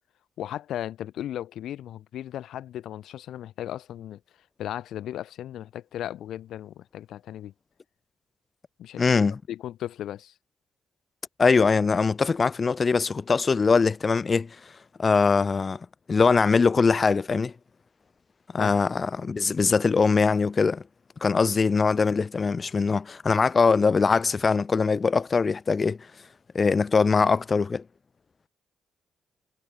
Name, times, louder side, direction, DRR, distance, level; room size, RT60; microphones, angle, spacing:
voice 1, 0.4-4.2 4.6-7.5 8.8-9.2 9.5-10.3 18.6-18.8, left 12 dB, 75° left, 0.6 m, -36 dB
voice 2, 9.0-9.4 11.4-14.6 15.0-15.8 16.1-17.5 18.5-20.8 21.2-26.0 26.5-27.8, left 4 dB, 35° left, 0.5 m, -22 dB
cardioid pair, 90°, 0 cm